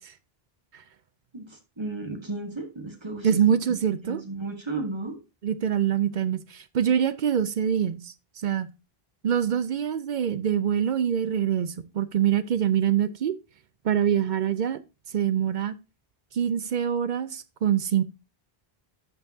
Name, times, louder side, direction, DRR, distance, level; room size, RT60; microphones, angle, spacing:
voice 1, 1.3-3.4 3.7-5.2, right 2 dB, 25° right, 1.3 m, -34 dB
voice 2, 3.2-4.2 5.4-8.7 9.2-13.4 13.8-14.8 15.1-15.7 16.3-18.0, right 9 dB, 60° right, 0.6 m, -25 dB
11.5 x 5.5 x 2.7 m
omnidirectional pair, 1.0 m